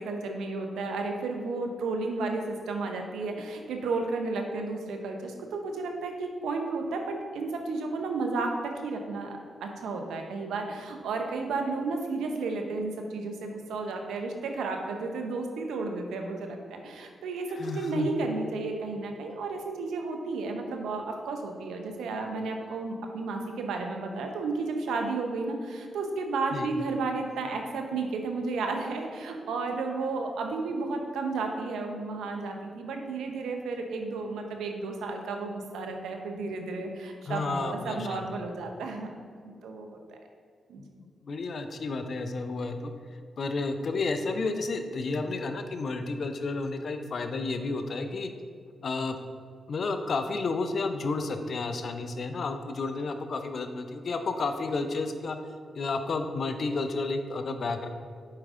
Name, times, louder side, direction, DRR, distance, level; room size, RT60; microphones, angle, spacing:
voice 1, 0.0-39.1 39.4-40.0 40.7-40.8, right 3 dB, 85° right, 3 dB, 0.7 m, -32 dB
voice 2, 17.6-18.1 26.5-26.7 37.3-38.2 40.8-42.9 43.4-48.3 48.8-49.2 49.7-55.4 55.7-57.9, left 3 dB, 60° left, 7 dB, 0.6 m, -31 dB
7.5 x 4.8 x 3.7 m, 2.2 s
supercardioid pair, 45°, 0 cm